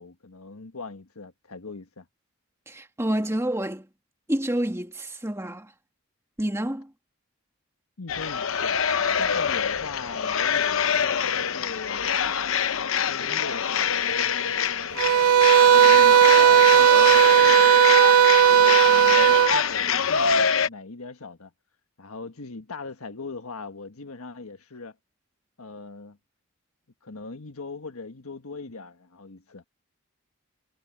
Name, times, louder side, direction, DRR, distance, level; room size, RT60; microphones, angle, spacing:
voice 1, 0.0-2.1 8.0-8.8 9.1-12.0 12.8-14.6 14.8-15.0 15.3-17.8 18.5-21.5 22.0-25.0 25.6-26.2 27.0-29.6, left 3 dB, 85° left, 1.5 m, -40 dB
voice 2, 2.7-3.9 4.3-5.7 6.4-6.9, right 1 dB, 10° right, 1.8 m, -28 dB
sound 1, 8.1-20.7, left 7 dB, 70° left, 0.9 m, -25 dB
sound 2, 15.0-19.6, right 9 dB, 80° right, 0.4 m, -16 dB
head